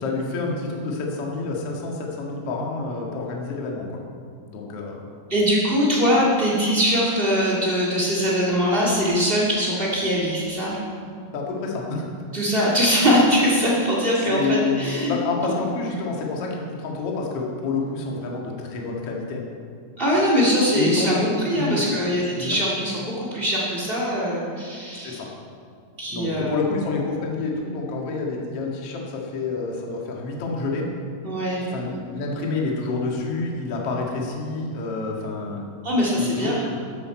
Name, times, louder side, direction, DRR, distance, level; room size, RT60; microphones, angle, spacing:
voice 1, 0.0-3.9 4.5-5.0 11.3-12.0 14.2-14.8 15.1-19.4 20.7-21.1 21.5-21.8 22.4-22.5 25.0-25.3 26.1-30.9 31.7-35.7 36.2-36.7, left 3 dB, 50° left, -2 dB, 2.1 m, -28 dB
voice 2, 5.3-10.8 12.3-15.1 20.0-25.2 26.0-26.6 31.2-31.6 35.8-36.6, equal, 65° right, -6 dB, 0.5 m, -22 dB
14.0 x 12.5 x 4.4 m, 2.3 s
omnidirectional pair, 4.9 m